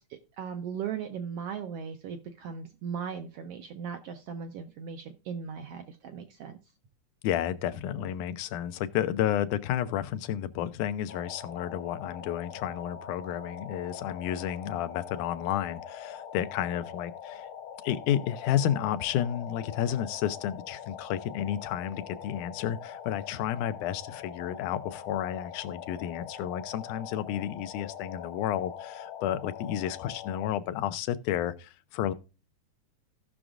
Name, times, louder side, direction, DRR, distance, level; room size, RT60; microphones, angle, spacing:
voice 1, 0.1-6.6, right 7 dB, 75° right, 1.5 m, -38 dB
voice 2, 7.2-17.5 17.8-32.1, left 11 dB, 90° left, 2.2 m, -31 dB
sound 1, 11.1-30.5, left 8 dB, 70° left, 1.2 m, -43 dB
17.0 x 6.1 x 2.5 m
omnidirectional pair, 3.5 m